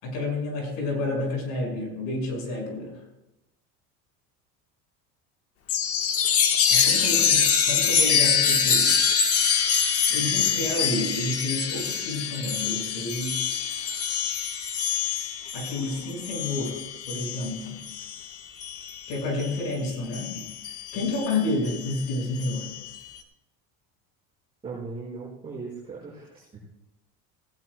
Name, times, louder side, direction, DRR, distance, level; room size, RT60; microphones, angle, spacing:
voice 1, 0.0-3.0 6.7-9.0 10.1-13.7 15.5-17.8 19.1-20.3 20.9-22.7, left 2 dB, 85° left, 1 dB, 5.7 m, -30 dB
Chime, 5.7-19.7 20.1-23.0, left 7 dB, 45° left, 1.3 m, -25 dB
voice 2, 24.6-26.5, right 4 dB, 15° right, -8 dB, 5.7 m, -38 dB
18.0 x 17.5 x 2.2 m, 0.89 s
cardioid pair, 155°, 34 cm